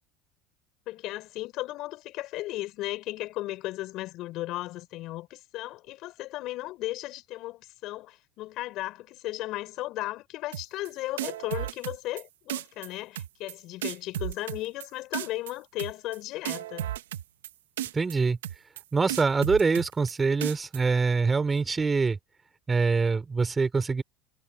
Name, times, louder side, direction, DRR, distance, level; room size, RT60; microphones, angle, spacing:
voice 1, 0.9-16.9, left 17 dB, 60° left, 6.5 m, -35 dB
sound 1, 10.5-10.9 11.2-12.2 12.5-12.9 13.1-13.5 13.8-14.9 15.1-15.5 15.8-16.2 16.4-17.5 17.8-18.2 18.4-18.8 19.1-20.1 20.4-20.8, right 12 dB, 90° right, 2.3 m, -34 dB
voice 2, 17.9-18.4 18.9-22.2 22.7-24.0, right 4 dB, 20° right, 4.2 m, -24 dB
hypercardioid pair, 90°, 0 cm